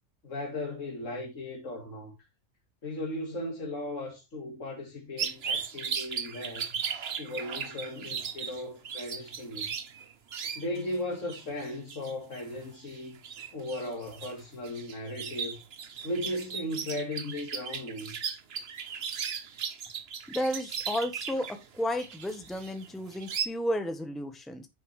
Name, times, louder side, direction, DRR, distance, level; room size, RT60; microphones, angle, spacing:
voice 1, 0.2-2.2 2.8-6.8 7.2-9.7 10.6-13.2 13.5-15.6 16.0-18.2, left 1 dB, 80° left, 2.3 m, -36 dB
sound 1, 5.2-11.0 11.2-23.5, right 7 dB, 55° right, 1.1 m, -37 dB
voice 2, 20.3-21.5 21.8-24.7, equal, ahead, 1.0 m, -32 dB
9.5 x 6.8 x 3.3 m
omnidirectional pair, 1.3 m